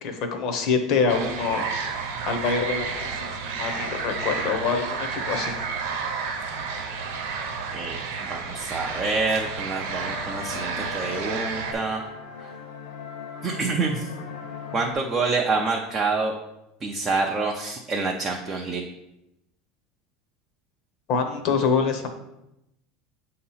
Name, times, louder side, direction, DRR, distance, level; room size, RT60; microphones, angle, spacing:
voice 1, 0.0-1.7 2.3-5.6 21.1-22.1, left 5 dB, 40° left, 5 dB, 0.7 m, -25 dB
sound 1, 1.1-11.7, right 5 dB, 80° right, 0.9 m, -31 dB
voice 2, 7.7-12.0 13.4-14.1 14.7-16.3 16.8-18.8, right 3 dB, 15° right, 0 dB, 0.4 m, -27 dB
sound 2, 9.9-14.9, left 6 dB, 80° left, 1.2 m, -38 dB
7.0 x 2.8 x 5.5 m, 0.87 s
cardioid pair, 180°, 0 cm